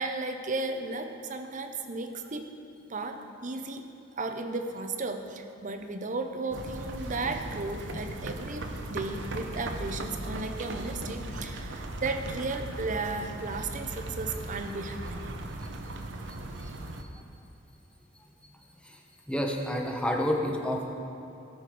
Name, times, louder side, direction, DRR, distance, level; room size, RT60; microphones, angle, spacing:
voice 1, 0.0-2.5 2.9-3.9 4.2-15.3, right 3 dB, 40° right, 6 dB, 0.8 m, -34 dB
sound 1, 6.5-17.0, right 2 dB, 70° right, 0.9 m, -38 dB
voice 2, 19.3-20.8, equal, 5° left, 1 dB, 1.1 m, -29 dB
18.0 x 6.4 x 5.0 m, 2.8 s
head